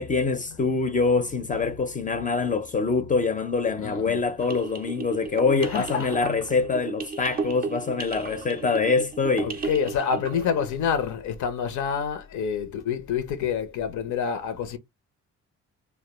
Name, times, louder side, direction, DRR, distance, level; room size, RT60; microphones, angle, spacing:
voice 1, 0.0-9.5, left 4 dB, 25° left, 0.4 m, -25 dB
voice 2, 3.8-4.2 5.6-6.3 9.4-14.8, left 7 dB, 75° left, 0.6 m, -28 dB
sound 1, 4.4-10.7, right 5 dB, 30° right, 0.4 m, -35 dB
2.1 x 2.1 x 2.9 m
cardioid pair, 90°, 30 cm